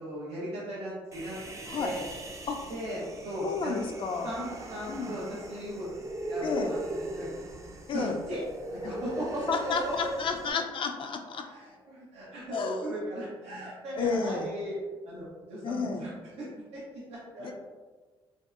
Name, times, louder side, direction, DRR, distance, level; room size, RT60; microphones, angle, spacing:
voice 1, 0.0-1.4 1.8-2.1 2.6-3.8 4.1-6.8 7.1-7.3 7.9-8.4 8.7-10.5 11.3-14.7 15.0-16.1 16.4-16.5 16.7-17.5, right 1 dB, 90° right, -7 dB, 0.9 m, -37 dB
Human voice, 1.1-10.5, right 1 dB, 30° right, 0.4 m, -40 dB
voice 2, 3.4-4.3 4.9-5.2 6.4-6.7 7.9-8.2 9.5-11.5 12.5-12.9 14.0-14.5 15.6-16.1 17.4-17.5, left 5 dB, 55° left, 4 dB, 0.4 m, -31 dB
3.2 x 2.7 x 2.4 m, 1.4 s
cardioid pair, 75°, 10 cm